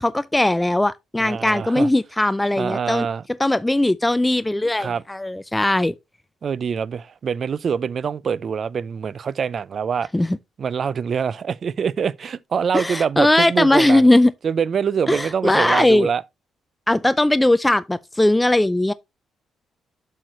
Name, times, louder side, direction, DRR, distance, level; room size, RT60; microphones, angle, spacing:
voice 1, 0.0-3.1 3.4-5.9 10.1-10.4 12.7-14.3 15.1-16.1 16.9-18.9, left 1 dB, 10° left, 0.3 m, -19 dB
voice 2, 1.2-1.9 2.5-3.2 4.8-5.0 6.4-10.1 10.6-14.1 14.4-16.2, right 6 dB, 50° right, 0.5 m, -24 dB
7.6 x 6.5 x 3.0 m
cardioid pair, 90°, 0 cm